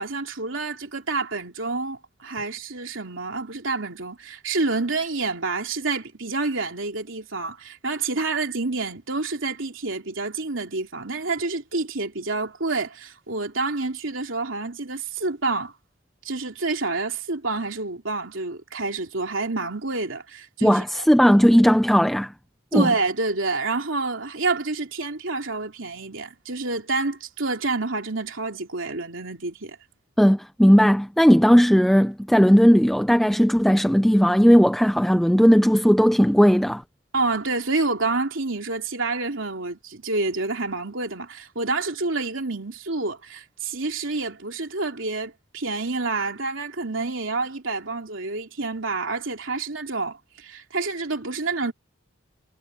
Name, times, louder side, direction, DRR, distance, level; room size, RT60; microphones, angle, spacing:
voice 1, 0.0-15.7 16.2-21.0 22.7-29.8 37.1-51.7, right 3 dB, 80° right, 3.0 m, -28 dB
voice 2, 20.6-22.3 22.7-22.9 30.2-36.8, equal, ahead, 0.5 m, -17 dB
head